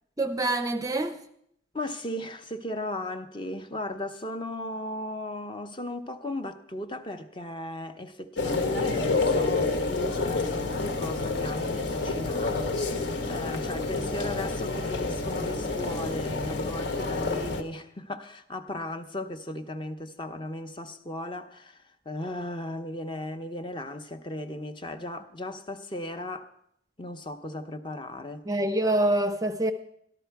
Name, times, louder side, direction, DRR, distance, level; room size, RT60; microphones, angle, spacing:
voice 1, 0.2-1.2 28.5-29.7, right 1 dB, 20° right, 0.5 m, -25 dB
voice 2, 1.7-26.5 27.0-28.4, left 1 dB, 25° left, 0.7 m, -36 dB
sound 1, 8.4-17.6, left 3 dB, 70° left, 1.2 m, -28 dB
13.0 x 12.5 x 4.6 m
head